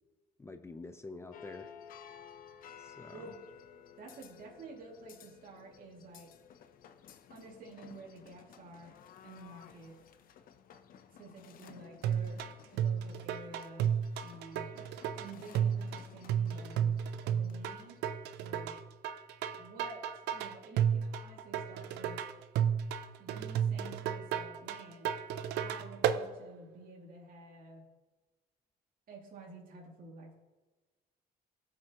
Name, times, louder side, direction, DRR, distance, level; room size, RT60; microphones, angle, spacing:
voice 1, 0.4-1.7 2.8-3.3, left 3 dB, 15° left, 7 dB, 0.6 m, -47 dB
sound 1, 1.3-18.0, left 8 dB, 55° left, 0.8 m, -56 dB
voice 2, 4.0-6.3 7.3-9.0 9.2-10.0 11.1-13.9 14.2-14.7 15.2-16.9 17.2-18.0 18.4-18.8 19.6-22.3 23.2-25.2 25.5-27.8 29.1-30.3, right 2 dB, 55° right, -2 dB, 2.5 m, -50 dB
sound 2, 12.0-26.2, right 9 dB, 85° right, 0.6 m, -33 dB
18.0 x 6.5 x 3.0 m, 1.2 s
cardioid pair, 110°, 17 cm